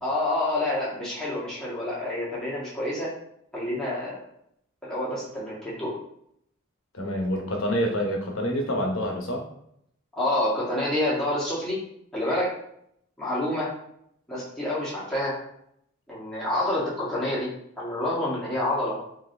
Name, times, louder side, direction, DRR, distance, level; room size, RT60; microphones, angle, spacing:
voice 1, 0.0-3.1 3.5-4.2 4.8-5.9 10.1-11.8 12.1-12.5 13.2-13.7 14.3-15.4 16.1-17.5 17.8-19.0, left 1 dB, 5° left, -9 dB, 1.5 m, -28 dB
voice 2, 6.9-9.4, equal, 75° left, 1 dB, 0.9 m, -27 dB
4.8 x 2.8 x 3.4 m, 0.73 s
head